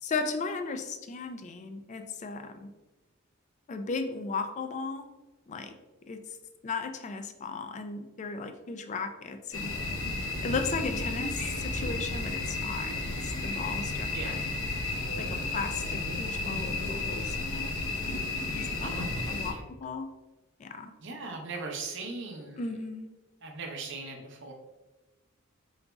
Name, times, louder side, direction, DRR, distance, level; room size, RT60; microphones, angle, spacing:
voice 1, 0.0-2.7 3.7-5.1 5.5-5.7 6.1-6.4 6.6-9.7 10.4-14.4 15.2-17.8 18.5-20.1 20.6-20.9 22.6-23.1, left 4 dB, 35° left, 7 dB, 0.3 m, -36 dB
sound 1, 9.5-19.5, left 2 dB, 75° left, 0.9 m, -33 dB
voice 2, 18.8-19.6 21.0-22.7 23.4-24.5, right 3 dB, 55° right, 2 dB, 0.7 m, -39 dB
4.0 x 3.9 x 2.3 m, 1.1 s
head